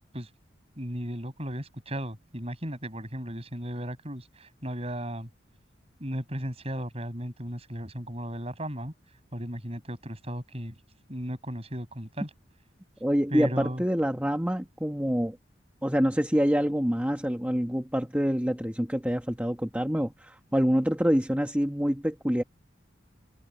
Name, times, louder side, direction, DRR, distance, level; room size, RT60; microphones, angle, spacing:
voice 1, 0.8-5.3 6.0-8.9 9.3-10.8 11.1-12.3 13.3-13.8, equal, 30° right, 7.4 m, -35 dB
voice 2, 13.0-15.4 15.8-22.4, equal, 10° right, 1.5 m, -26 dB
head